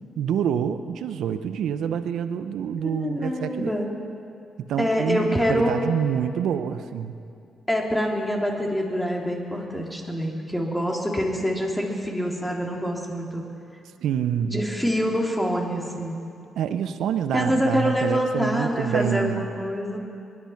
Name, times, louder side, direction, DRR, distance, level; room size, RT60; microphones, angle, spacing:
voice 1, 0.2-3.8 4.7-7.2 14.0-14.6 16.6-19.5, right 8 dB, 75° right, 11 dB, 0.7 m, -27 dB
voice 2, 2.8-3.9 4.8-5.8 7.7-13.4 14.4-16.1 17.3-20.0, equal, 10° left, -1 dB, 3.4 m, -25 dB
21.5 x 11.0 x 5.9 m, 2.5 s
supercardioid pair, 50°, 0 cm